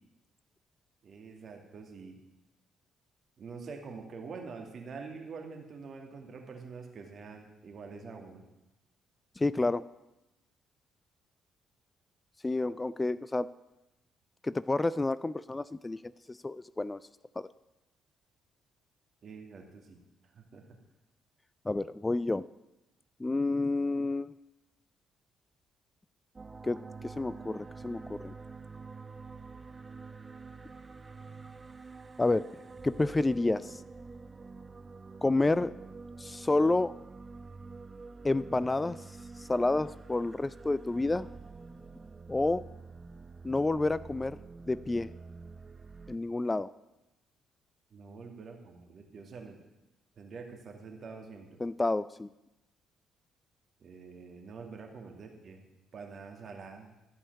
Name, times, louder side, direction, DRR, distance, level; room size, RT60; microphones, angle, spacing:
voice 1, 1.0-2.2 3.4-8.4 19.2-20.0 20.3-20.6 47.9-49.6 50.2-51.6 53.8-55.7 55.9-56.9, right 4 dB, 55° right, 2 dB, 2.3 m, -46 dB
voice 2, 9.4-9.8 12.4-13.5 14.4-17.0 17.4-17.5 21.7-22.5 23.2-24.3 26.6-28.3 32.2-32.5 32.8-33.8 35.2-35.7 36.2-36.9 38.2-39.0 39.4-41.3 42.3-42.7 43.4-44.4 44.7-45.1 46.1-46.7 51.6-52.3, left 2 dB, 20° left, 17 dB, 0.4 m, -29 dB
sound 1, 26.3-46.2, right 4 dB, 30° right, 0.7 m, -47 dB
13.5 x 5.5 x 8.2 m, 0.98 s
hypercardioid pair, 50°, 0 cm